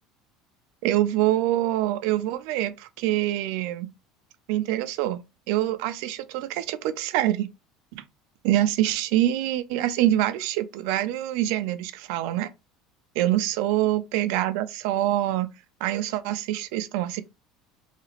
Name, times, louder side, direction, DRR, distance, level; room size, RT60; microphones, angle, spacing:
voice 1, 0.8-3.9 4.5-5.2 5.5-7.5 7.9-8.0 8.4-12.5 13.2-15.5 15.8-17.2, right 13 dB, 70° right, 0.3 m, -25 dB
2.8 x 2.4 x 2.8 m
cardioid pair, 155°, 0 cm